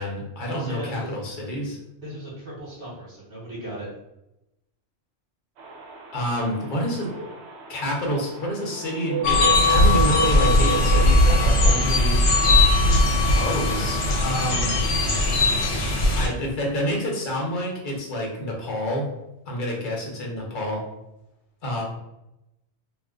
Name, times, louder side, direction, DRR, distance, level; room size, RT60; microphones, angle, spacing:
voice 1, 0.0-1.8 6.1-7.1 7.7-12.2 13.3-14.9 16.1-19.1 19.5-20.8 21.6-21.8, equal, 50° left, -1 dB, 0.8 m, -28 dB
voice 2, 0.5-1.1 2.0-3.9 21.8-21.9, equal, 45° right, -9 dB, 1.1 m, -37 dB
sound 1, 5.6-11.1, right 6 dB, 70° right, 0.8 m, -33 dB
sound 2, 9.2-16.3, left 2 dB, 70° left, 0.9 m, -19 dB
2.4 x 2.3 x 3.6 m, 0.90 s
omnidirectional pair, 1.2 m